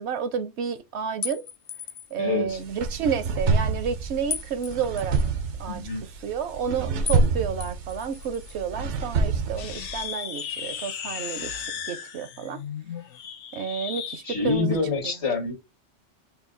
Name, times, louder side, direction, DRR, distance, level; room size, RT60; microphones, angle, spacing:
voice 1, 0.0-1.4 2.1-5.2 5.6-5.8 6.2-11.5 11.9-12.6 13.5-14.8, right 7 dB, 75° right, 0.9 m, -30 dB
sound 1, 1.2-2.2 4.3-5.3 7.1-7.3 7.6-8.6, left 8 dB, 50° left, 0.4 m, -36 dB
voice 2, 2.2-2.6 5.7-6.0 14.2-15.5, left 4 dB, 70° left, 1.7 m, -26 dB
sound 2, 2.5-9.9, right 4 dB, 90° right, 1.1 m, -27 dB
sound 3, 9.5-14.2, left 8 dB, 85° left, 1.0 m, -35 dB
5.4 x 2.3 x 3.8 m
omnidirectional pair, 1.2 m